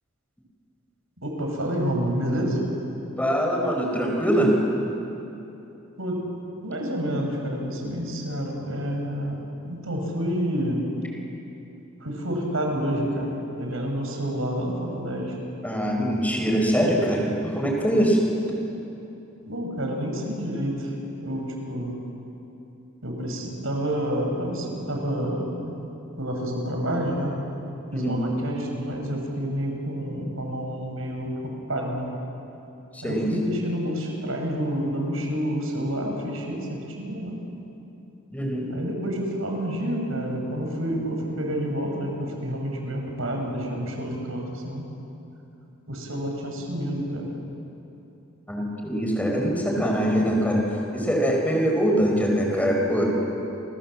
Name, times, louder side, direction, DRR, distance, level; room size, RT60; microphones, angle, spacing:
voice 1, 1.2-2.7 6.0-10.9 12.0-15.4 19.4-20.9 21.2-22.0 23.0-25.9 26.2-27.4 27.9-32.1 33.0-37.4 38.7-44.8 45.9-47.3, equal, 75° right, 2 dB, 6.0 m, -29 dB
voice 2, 3.2-4.6 15.6-18.3 27.9-28.2 32.9-33.3 38.3-38.7 48.5-50.6 50.9-53.2, equal, 10° left, 0 dB, 5.0 m, -23 dB
30.0 x 23.5 x 7.6 m, 2.9 s
head